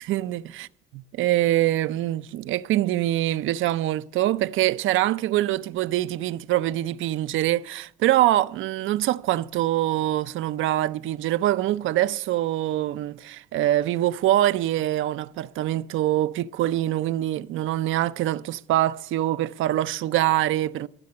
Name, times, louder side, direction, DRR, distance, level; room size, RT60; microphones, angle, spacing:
voice 1, 0.1-0.7 1.1-20.9, right 14 dB, 80° right, 0.5 m, -24 dB
15.0 x 6.7 x 8.5 m
cardioid pair, 90°, 20 cm